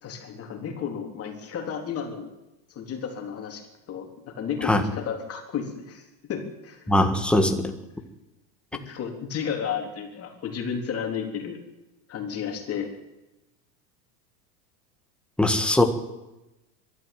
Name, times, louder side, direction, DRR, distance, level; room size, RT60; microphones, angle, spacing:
voice 1, 0.0-2.3 2.8-6.0 6.3-6.8 8.7-11.6 12.1-12.9, left 7 dB, 30° left, 3 dB, 3.8 m, -32 dB
voice 2, 6.9-7.7 15.4-15.8, left 1 dB, ahead, 5 dB, 1.6 m, -21 dB
22.5 x 13.0 x 9.2 m, 0.98 s
supercardioid pair, 145°, 50 cm